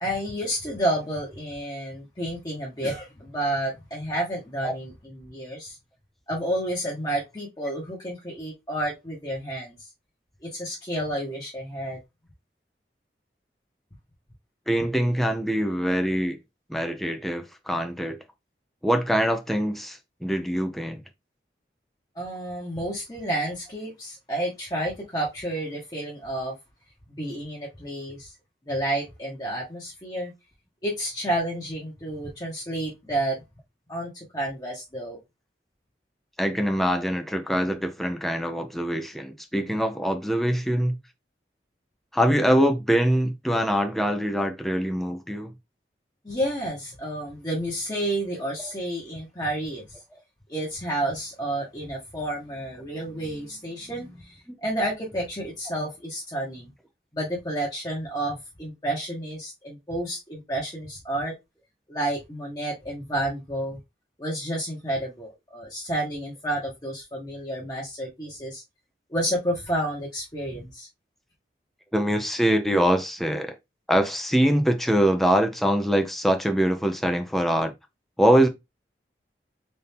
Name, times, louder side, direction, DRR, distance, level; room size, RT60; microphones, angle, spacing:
voice 1, 0.0-5.8 6.3-9.8 10.4-12.0 22.1-26.5 27.1-28.3 28.7-30.3 30.8-33.3 33.9-35.2 46.2-49.8 50.5-56.7 57.1-61.3 61.9-63.8 64.2-68.6 69.1-70.9, right 1 dB, 20° left, 1.0 m, -30 dB
voice 2, 14.7-16.4 16.7-18.2 18.8-21.0 36.4-41.0 42.1-45.5 48.6-48.7 71.9-73.5 73.9-77.7 78.2-78.5, equal, ahead, 0.4 m, -23 dB
4.2 x 2.6 x 3.4 m
head